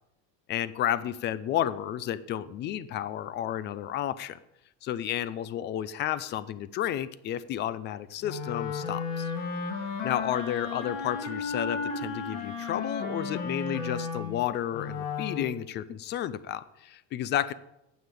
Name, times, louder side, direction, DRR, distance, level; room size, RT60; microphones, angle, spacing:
voice 1, 0.5-4.4 4.8-9.3 10.0-17.5, left 11 dB, 30° left, 16 dB, 0.4 m, -32 dB
Wind instrument woodwind instrument, 8.2-15.6, left 5 dB, 50° left, 2.3 m, -34 dB
9.6 x 7.3 x 8.4 m, 0.89 s
cardioid pair, 160°, 38 cm